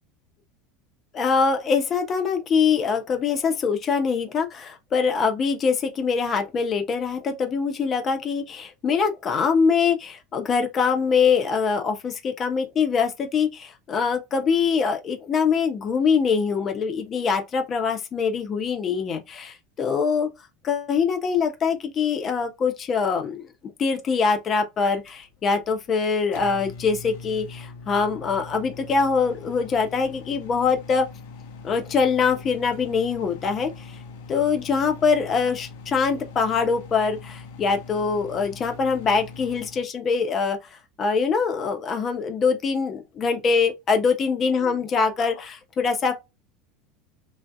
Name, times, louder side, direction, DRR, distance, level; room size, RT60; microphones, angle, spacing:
voice 1, 1.1-20.3 20.6-23.5 23.8-31.1 31.6-34.0 34.3-40.6 41.0-46.1, left 5 dB, 35° left, 0.8 m, -23 dB
Microwave oven, 24.8-39.9, left 4 dB, 65° left, 0.6 m, -42 dB
3.2 x 2.6 x 2.2 m
hypercardioid pair, 80°, 0 cm